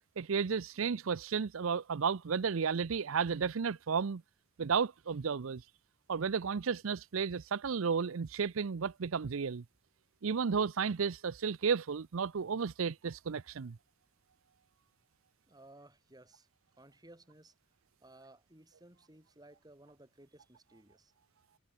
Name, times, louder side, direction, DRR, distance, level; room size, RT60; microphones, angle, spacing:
voice 1, 0.2-4.2 4.6-5.6 6.1-9.6 10.2-13.8, right 6 dB, 70° right, 0.5 m, -33 dB
voice 2, 15.5-16.5 16.8-17.5 18.0-21.1, right 1 dB, 20° right, 6.3 m, -58 dB
head